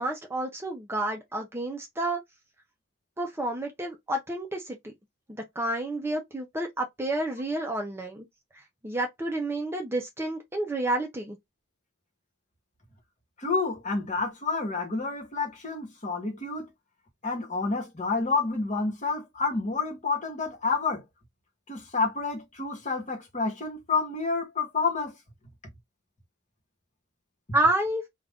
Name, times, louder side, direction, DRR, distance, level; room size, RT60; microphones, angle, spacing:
voice 1, 0.0-2.2 3.2-4.9 5.6-8.2 8.8-11.4 27.5-28.0, right 1 dB, 10° right, 0.5 m, -29 dB
voice 2, 13.4-16.7 17.2-21.0 21.7-25.1, left 4 dB, 35° left, 1.2 m, -29 dB
2.5 x 2.3 x 3.4 m
head